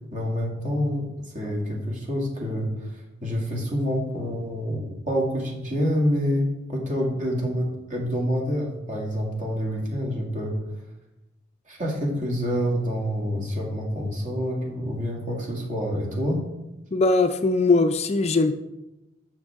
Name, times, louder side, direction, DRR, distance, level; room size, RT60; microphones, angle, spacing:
voice 1, 0.1-1.1 1.3-10.6 11.7-16.4, equal, 40° right, -1 dB, 2.3 m, -27 dB
voice 2, 16.9-18.5, left 3 dB, 30° left, 8 dB, 0.4 m, -20 dB
11.5 x 6.4 x 3.6 m, 0.96 s
head